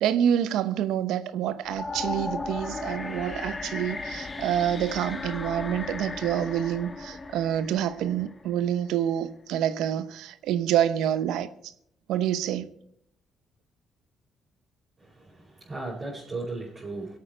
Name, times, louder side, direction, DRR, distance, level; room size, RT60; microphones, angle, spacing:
voice 1, 0.0-11.5 12.1-12.7, right 10 dB, 90° right, 0.8 m, -27 dB
sound 1, 1.6-8.7, left 3 dB, 30° left, 1.2 m, -36 dB
voice 2, 15.0-17.2, right 3 dB, 35° right, 4.9 m, -36 dB
24.0 x 8.7 x 4.4 m
cardioid pair, 90°, 0 cm